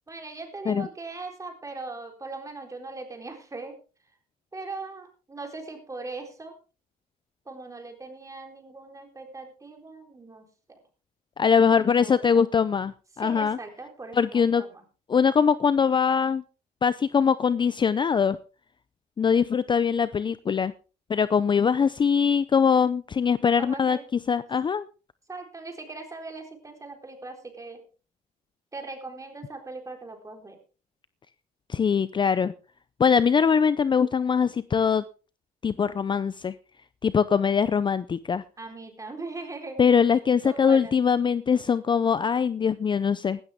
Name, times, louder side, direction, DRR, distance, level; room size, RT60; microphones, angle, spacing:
voice 1, 0.1-3.8 4.5-6.6 7.5-10.8 11.7-12.5 13.2-14.8 23.6-24.0 25.3-27.8 28.7-30.6 38.6-40.2 40.4-41.0, right 3 dB, 20° right, 4 dB, 4.0 m, -40 dB
voice 2, 11.4-13.6 14.1-14.6 15.1-16.4 16.8-18.4 19.2-20.7 21.1-24.0 24.3-24.9 31.7-32.5 33.0-35.0 35.6-36.5 37.0-38.4 39.8-43.4, left 6 dB, 30° left, 15 dB, 0.5 m, -22 dB
16.0 x 12.5 x 3.6 m, 0.35 s
cardioid pair, 110°, 17 cm